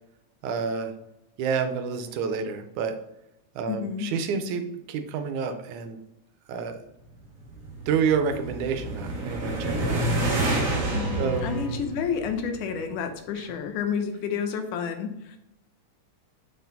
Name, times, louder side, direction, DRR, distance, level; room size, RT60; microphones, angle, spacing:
voice 1, 0.4-0.9 1.4-3.0 3.6-6.0 6.5-6.8 7.9-10.0 11.2-11.4 13.4-13.5, right 6 dB, 80° right, 8 dB, 2.0 m, -28 dB
voice 2, 3.7-4.1 10.9-15.4, left 6 dB, 85° left, 7 dB, 2.3 m, -30 dB
sound 1, 7.2-12.7, right 1 dB, 45° right, 1.0 m, -29 dB
Bowed string instrument, 8.7-11.8, right 1 dB, 30° left, 1.3 m, -39 dB
6.4 x 4.3 x 4.0 m, 0.84 s
omnidirectional pair, 3.5 m